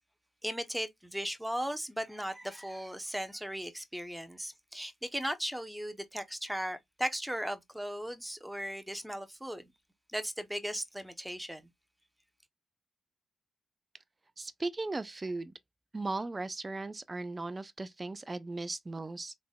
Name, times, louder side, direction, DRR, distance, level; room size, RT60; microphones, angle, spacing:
voice 1, 0.4-9.7 10.1-11.6, equal, 5° right, 0.9 m, -37 dB
voice 2, 14.4-15.5 15.9-19.3, right 2 dB, 30° right, 0.5 m, -37 dB
3.8 x 3.4 x 2.3 m
supercardioid pair, 50°, 0 cm